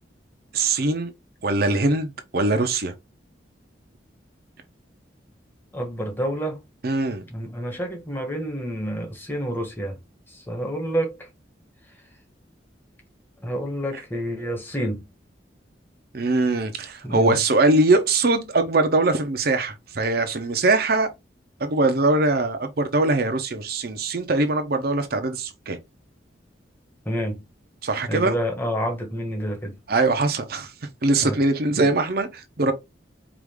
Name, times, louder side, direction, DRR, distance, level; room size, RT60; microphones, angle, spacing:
voice 1, 0.5-1.1 1.4-2.9 6.8-7.2 16.1-21.1 21.6-25.8 27.8-28.3 29.9-30.7 31.0-32.7, right 2 dB, 55° right, 0.7 m, -22 dB
voice 2, 5.7-6.6 7.2-10.0 10.3-11.3 13.4-15.0 17.0-17.4 27.0-27.4 28.1-29.8 31.2-31.4 31.7-31.9, equal, 10° left, 1.2 m, -29 dB
4.8 x 2.6 x 3.5 m
head